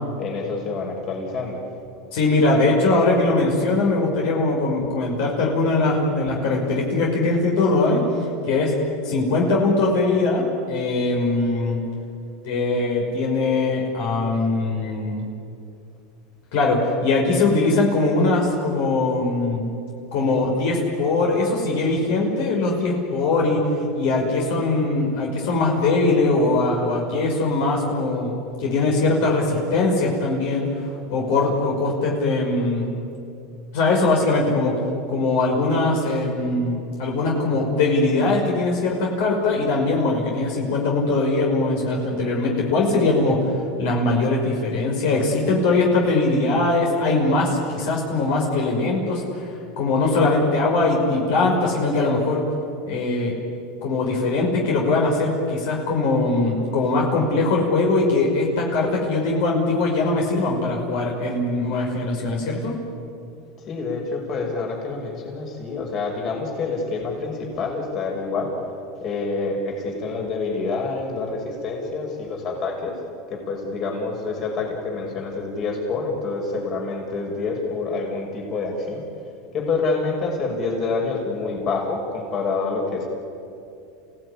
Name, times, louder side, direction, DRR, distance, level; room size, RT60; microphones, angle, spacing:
voice 1, 0.2-1.6 6.2-6.4 63.7-68.6 69.0-73.0 73.3-79.0 79.5-83.1, left 3 dB, 45° left, 0 dB, 6.2 m, -27 dB
voice 2, 2.1-8.0 8.4-8.7 9.0-11.8 12.4-15.3 16.5-19.7 20.1-23.6 23.9-30.7 31.1-33.0 33.7-34.8 35.1-43.5 43.8-52.5 52.9-53.3 53.8-62.8, left 3 dB, 70° left, -1 dB, 5.6 m, -21 dB
28.0 x 17.5 x 10.0 m, 2.6 s
supercardioid pair, 125°, 0 cm